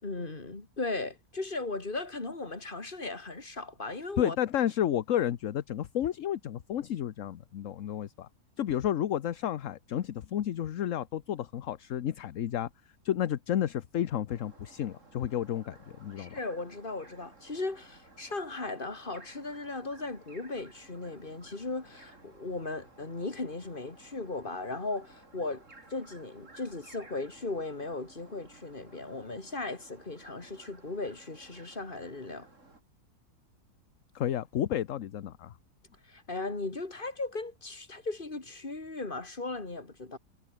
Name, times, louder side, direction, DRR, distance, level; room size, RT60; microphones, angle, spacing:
voice 1, 0.0-4.4 16.2-25.6 25.9-32.5 36.0-40.2, left 3 dB, 30° left, 3.0 m, -37 dB
voice 2, 4.2-8.3 8.6-12.7 13.0-16.4 34.1-35.5, left 10 dB, 60° left, 1.1 m, -31 dB
sound 1, 14.3-32.8, right 2 dB, 50° right, 4.8 m, -56 dB
omnidirectional pair, 1.7 m